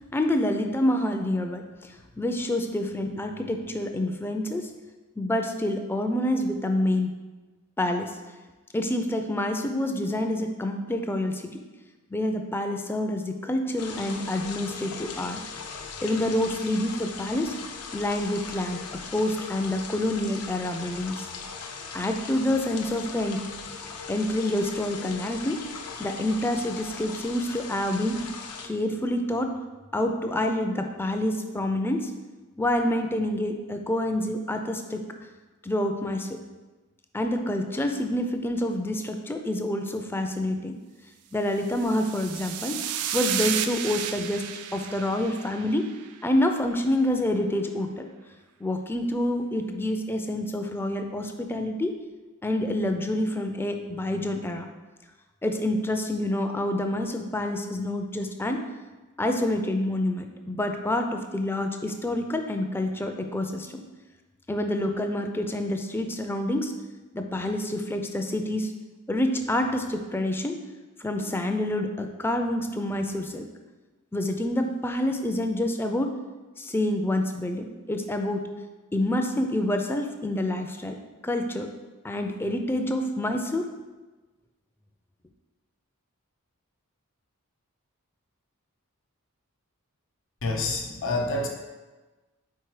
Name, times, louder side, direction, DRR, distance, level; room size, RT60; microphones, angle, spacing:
voice 1, 0.1-4.7 5.2-7.2 7.8-8.2 8.7-11.6 12.1-15.4 16.0-17.5 17.9-21.3 21.9-23.4 24.1-25.6 26.0-28.3 28.6-29.5 29.9-32.1 32.6-35.1 35.6-36.4 37.1-40.8 41.3-42.8 43.1-44.4 44.7-45.9 46.2-48.1 48.6-51.9 52.4-54.7 55.4-58.6 59.2-63.8 64.5-66.7 67.1-68.7 69.1-70.6 71.0-73.5 74.1-76.1 76.6-78.5 78.9-81.0 81.2-81.7 82.0-83.6, left 1 dB, 10° left, 5 dB, 0.3 m, -27 dB
sound 1, 13.8-28.7, left 5 dB, 85° left, 0.6 m, -39 dB
sound 2, 41.6-46.1, right 9 dB, 85° right, 0.4 m, -32 dB
voice 2, 90.4-91.5, left 2 dB, 60° left, 2 dB, 0.9 m, -27 dB
4.6 x 4.3 x 4.7 m, 1.2 s
head